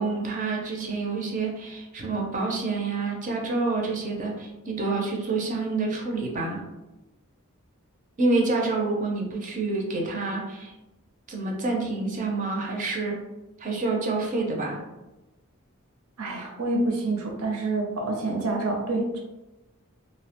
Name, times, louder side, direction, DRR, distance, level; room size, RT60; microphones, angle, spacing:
voice 1, 0.0-6.6 8.2-10.7 11.3-13.2 13.6-14.8, right 3 dB, 35° right, 0 dB, 0.4 m, -28 dB
voice 2, 16.2-19.2, right 2 dB, 80° right, 0 dB, 0.6 m, -27 dB
2.6 x 2.1 x 2.8 m, 1.0 s
head